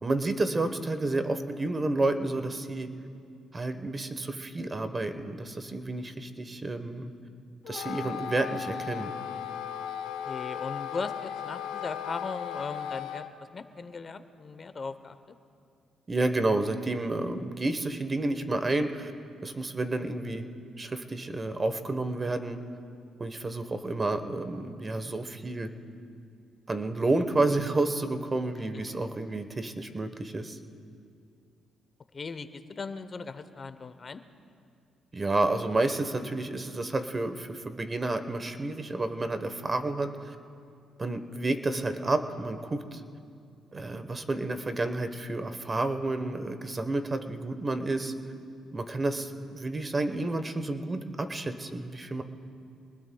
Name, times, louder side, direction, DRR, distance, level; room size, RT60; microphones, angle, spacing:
voice 1, 0.0-2.9 3.5-7.1 7.7-9.1 16.1-19.1 19.4-20.4 20.8-22.6 23.2-25.7 26.7-30.6 35.1-40.3 41.0-43.0 43.7-48.1 48.7-52.2, right 2 dB, 25° right, 8 dB, 1.1 m, -30 dB
Wind instrument woodwind instrument, 7.6-13.3, left 9 dB, 90° left, 0.6 m, -36 dB
voice 2, 10.3-13.3 13.5-15.2 32.1-34.2, left 4 dB, 40° left, 11 dB, 0.8 m, -38 dB
27.0 x 20.0 x 2.3 m, 2.4 s
cardioid pair, 90°, 0 cm